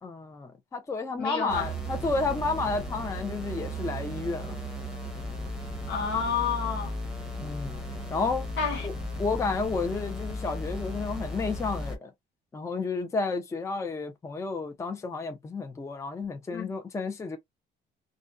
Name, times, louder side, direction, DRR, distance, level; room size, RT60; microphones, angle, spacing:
voice 1, 0.0-4.6 7.4-7.7 8.1-8.5 8.8-12.1 12.5-17.4, left 3 dB, 15° left, 0.5 m, -31 dB
voice 2, 1.2-1.7 5.9-7.0 8.6-8.9 16.5-16.7, left 6 dB, 80° left, 1.3 m, -29 dB
sound 1, 1.5-12.0, equal, 5° right, 0.8 m, -35 dB
2.4 x 2.1 x 2.3 m
cardioid pair, 135°, 18 cm